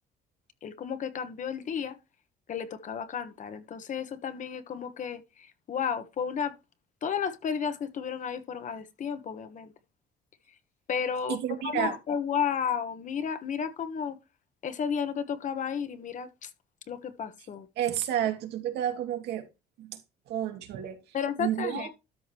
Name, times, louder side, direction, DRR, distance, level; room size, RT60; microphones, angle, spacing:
voice 1, 0.6-2.0 2.5-6.5 7.0-9.7 10.9-11.4 11.6-14.2 14.6-16.5 16.9-17.7 21.1-21.9, left 7 dB, 50° left, 1.3 m, -32 dB
voice 2, 11.3-12.0 17.8-19.5 19.8-20.0 20.3-21.9, right 11 dB, 80° right, 2.4 m, -31 dB
13.0 x 5.2 x 3.0 m
cardioid pair, 110°, 17 cm